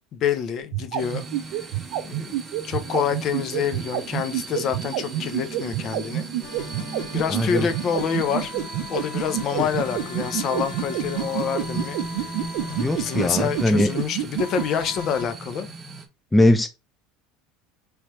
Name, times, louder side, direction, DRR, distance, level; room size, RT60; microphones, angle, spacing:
voice 1, 0.1-1.2 2.0-2.3 2.6-6.3 7.1-8.5 8.9-12.0 12.9-15.7, left 7 dB, 45° left, 0.7 m, -27 dB
sound 1, 0.6-14.6, right 14 dB, 70° right, 0.4 m, -27 dB
sound 2, 1.0-16.1, right 3 dB, 20° right, 0.9 m, -37 dB
sound 3, 6.4-15.2, left 4 dB, 65° left, 2.0 m, -38 dB
voice 2, 7.3-7.7 12.8-13.9 16.3-16.7, left 1 dB, 10° left, 0.4 m, -20 dB
3.3 x 3.1 x 4.3 m
supercardioid pair, 115°, 0 cm